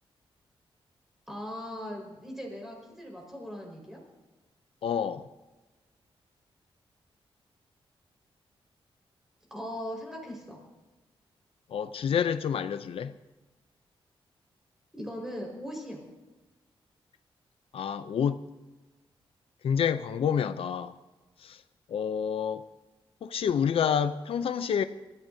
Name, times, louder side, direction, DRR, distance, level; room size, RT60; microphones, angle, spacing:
voice 1, 1.3-4.0 9.5-10.6 14.9-16.0, equal, 5° right, 4.7 m, -39 dB
voice 2, 4.8-5.3 11.7-13.1 17.7-18.4 19.6-21.0 21.4-21.6 21.9-22.6 23.2-24.8, left 7 dB, 75° left, 0.5 m, -28 dB
26.0 x 14.5 x 2.7 m
wide cardioid pair, 165°, 10 cm